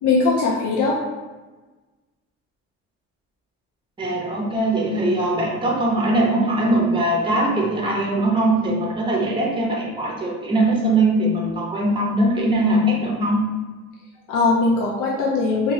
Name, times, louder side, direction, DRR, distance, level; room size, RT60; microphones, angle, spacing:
voice 1, 0.0-1.0 14.3-15.7, left 3 dB, 90° left, -4 dB, 0.5 m, -20 dB
voice 2, 4.0-13.5, right 1 dB, 15° right, -2 dB, 0.6 m, -21 dB
2.6 x 2.3 x 3.0 m, 1.2 s
cardioid pair, 90°, 30 cm